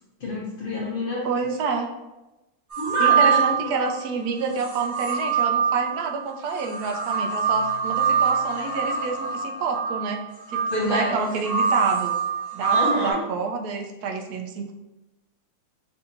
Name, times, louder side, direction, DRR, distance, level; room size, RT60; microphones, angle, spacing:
voice 1, 0.2-1.2 2.8-3.7 10.7-11.2 12.7-13.2, left 1 dB, 45° left, -4 dB, 0.8 m, -28 dB
voice 2, 1.2-1.9 3.0-10.2 10.5-12.1 12.5-14.7, right 4 dB, 85° right, 2 dB, 1.1 m, -28 dB
sound 1, 2.7-3.9 4.5-13.1, right 6 dB, 60° right, 2.1 m, -24 dB
6.6 x 2.7 x 2.6 m, 1.0 s
omnidirectional pair, 1.6 m